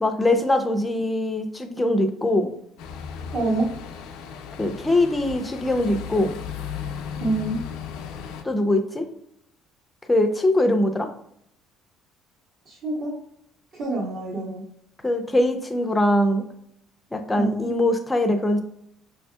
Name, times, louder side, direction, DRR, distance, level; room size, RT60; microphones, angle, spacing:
voice 1, 0.0-2.5 4.6-6.3 8.4-9.1 10.1-11.1 15.0-16.4 17.1-18.6, left 1 dB, 10° left, 5 dB, 0.5 m, -22 dB
sound 1, 2.8-8.4, left 7 dB, 85° left, 0.4 m, -35 dB
voice 2, 3.3-3.7 7.2-7.6 12.6-13.1 13.7-14.6 17.3-17.7, right 2 dB, 45° right, -8 dB, 1.3 m, -26 dB
5.8 x 2.6 x 2.2 m, 0.72 s
cardioid pair, 140°, 0 cm